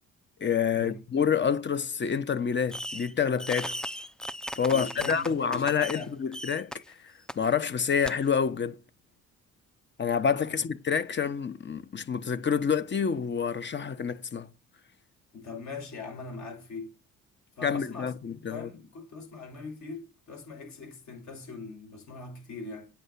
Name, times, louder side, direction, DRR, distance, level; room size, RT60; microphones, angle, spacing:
voice 1, 0.4-3.8 4.5-6.9 7.4-8.8 10.0-14.5 17.6-18.7, left 7 dB, 40° left, 0.9 m, -28 dB
Fireworks, 2.7-3.1 3.4-6.0 6.3-6.8 7.3-7.4 8.0-8.1, equal, ahead, 0.5 m, -37 dB
voice 2, 4.7-6.1 15.3-17.0 17.6-18.1 18.5-22.9, left 4 dB, 65° left, 6.5 m, -41 dB
8.9 x 5.8 x 8.3 m
cardioid pair, 90°, 30 cm